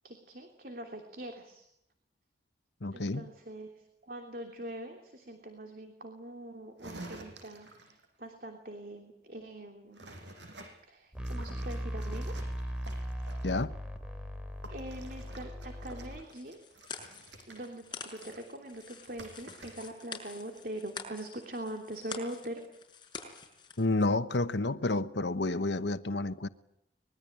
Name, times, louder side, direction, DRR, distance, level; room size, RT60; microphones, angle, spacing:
voice 1, 0.0-1.7 2.9-10.1 10.8-12.4 14.7-16.6 17.5-22.6, right 1 dB, 55° right, 3.1 m, -43 dB
voice 2, 2.8-3.2 13.4-13.7 23.8-26.5, left 2 dB, 75° left, 1.1 m, -30 dB
sound 1, 6.8-8.0 9.9-10.7 11.2-13.7 14.6-20.1 20.3-20.6, right 2 dB, 90° right, 6.6 m, -50 dB
sound 2, 11.1-16.2, equal, 5° right, 3.5 m, -38 dB
sound 3, 16.3-23.9, left 5 dB, 25° left, 5.9 m, -47 dB
25.0 x 22.0 x 8.9 m
head